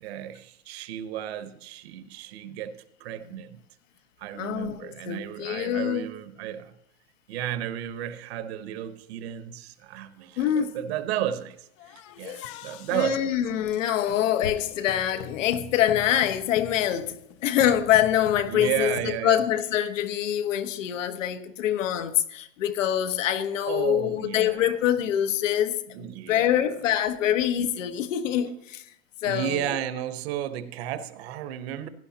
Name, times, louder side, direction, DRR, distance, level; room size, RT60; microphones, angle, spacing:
voice 1, 0.0-3.6 4.2-6.7 7.3-13.4 14.1-14.4 18.5-19.4 23.7-24.7 25.9-26.6 29.2-31.9, right 11 dB, 55° right, 1.1 m, -33 dB
voice 2, 4.4-6.1 10.4-10.8 12.4-12.5 12.9-17.2 17.4-28.8 29.2-29.7, left 10 dB, 90° left, 1.3 m, -25 dB
sound 1, 11.8-19.2, left 8 dB, 25° left, 0.3 m, -42 dB
17.0 x 11.0 x 2.9 m
supercardioid pair, 170°, 37 cm